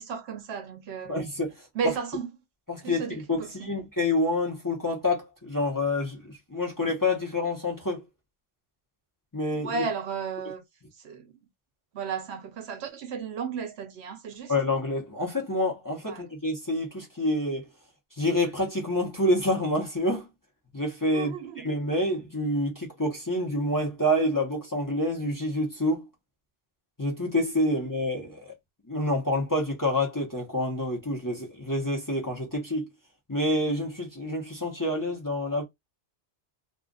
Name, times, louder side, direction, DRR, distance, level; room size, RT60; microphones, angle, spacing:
voice 1, 0.0-1.2 1.7-2.3 2.8-3.7 9.6-10.6 11.0-11.3 11.9-14.5 16.0-16.3 21.1-21.7, right 6 dB, 70° right, 0.8 m, -34 dB
voice 2, 1.1-1.5 2.7-8.0 9.3-9.8 14.5-17.7 18.2-20.3 20.7-26.1 27.0-28.5 28.9-32.9 33.3-35.6, left 1 dB, 20° left, 0.9 m, -27 dB
2.5 x 2.3 x 3.8 m
omnidirectional pair, 1.2 m